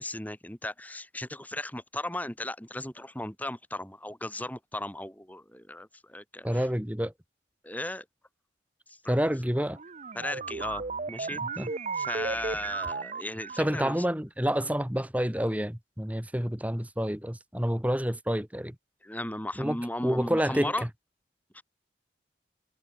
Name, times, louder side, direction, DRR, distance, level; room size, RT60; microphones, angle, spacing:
voice 1, 0.0-6.6 7.6-8.0 8.9-9.2 10.1-11.4 12.0-13.9 19.0-20.9 21.5-21.6, left 1 dB, 10° left, 4.3 m, -36 dB
voice 2, 6.4-7.1 9.1-9.8 11.3-11.7 13.6-18.7 19.6-19.8 20.0-20.7, equal, 10° right, 1.6 m, -28 dB
sound 1, 9.7-13.9, right 4 dB, 40° right, 0.7 m, -35 dB
head